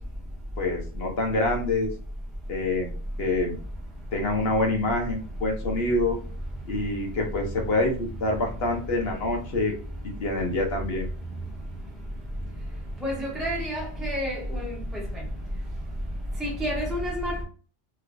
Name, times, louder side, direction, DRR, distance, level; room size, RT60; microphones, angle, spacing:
voice 1, 0.6-1.9 2.5-2.9 3.2-3.6 4.1-6.2 6.7-9.7 10.0-11.1, left 2 dB, 60° left, 1.1 m, -26 dB
voice 2, 13.0-15.0 16.4-17.4, equal, ahead, 0.6 m, -29 dB
3.3 x 3.0 x 2.4 m
omnidirectional pair, 1.2 m